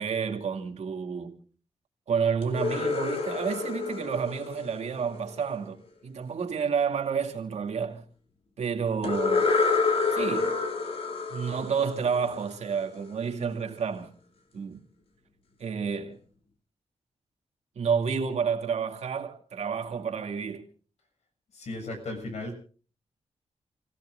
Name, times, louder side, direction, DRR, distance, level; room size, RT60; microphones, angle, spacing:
voice 1, 0.0-1.3 2.1-8.0 8.6-9.5 10.1-10.6 11.3-14.1 14.5-14.8 15.6-16.2 17.8-20.7, right 6 dB, 80° right, 2.4 m, -30 dB
sound 1, 2.4-5.4 9.0-12.8, left 4 dB, 60° left, 2.7 m, -28 dB
voice 2, 21.5-22.6, left 2 dB, 80° left, 7.2 m, -36 dB
29.5 x 16.5 x 2.5 m
wide cardioid pair, 125°, 11 cm